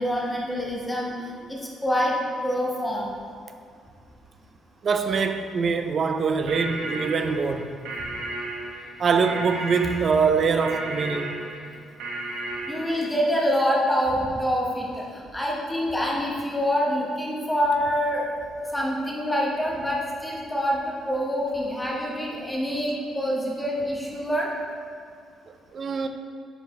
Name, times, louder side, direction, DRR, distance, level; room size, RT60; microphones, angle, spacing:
voice 1, 0.0-3.1 12.7-24.5, equal, 10° left, 1.0 m, -26 dB
voice 2, 4.8-7.7 9.0-11.5 25.7-26.1, right 5 dB, 35° right, 0.4 m, -23 dB
sound 1, 6.5-13.1, right 2 dB, 80° right, 1.2 m, -34 dB
9.8 x 5.2 x 3.2 m
cardioid pair, 170°, 0 cm